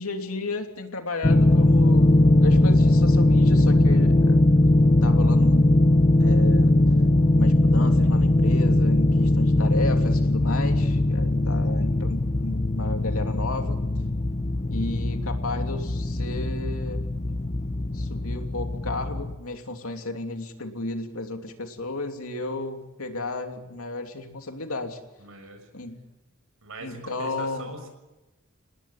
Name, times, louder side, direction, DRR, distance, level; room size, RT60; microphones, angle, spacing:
voice 1, 0.0-4.4 5.0-5.7 6.2-6.7 7.3-13.8 14.7-17.1 17.9-25.0 25.7-26.0 26.8-27.7, left 2 dB, 75° left, 5 dB, 3.1 m, -33 dB
sound 1, 1.2-19.4, left 1 dB, 30° left, 1.0 m, -20 dB
voice 2, 25.2-25.6 26.6-27.9, right 2 dB, 70° right, 6 dB, 6.4 m, -40 dB
27.5 x 19.5 x 7.4 m, 1.0 s
head